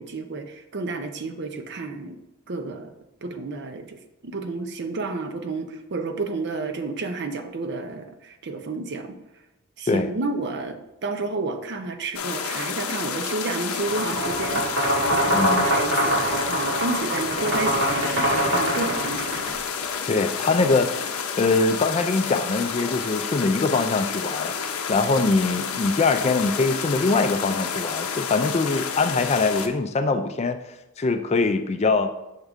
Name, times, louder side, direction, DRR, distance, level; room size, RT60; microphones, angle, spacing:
voice 1, 0.0-2.2 2.5-2.9 3.2-4.0 4.2-9.1 9.8-14.8 15.1-19.6, right 3 dB, 50° right, 7 dB, 0.6 m, -31 dB
sound 1, 12.1-29.7, left 6 dB, 80° left, 0.6 m, -30 dB
sound 2, 13.8-19.5, right 1 dB, 70° right, 2.4 m, -23 dB
voice 2, 15.3-15.7 20.1-30.6 31.0-32.1, left 3 dB, 30° left, 8 dB, 0.3 m, -23 dB
6.4 x 3.6 x 5.0 m, 0.94 s
head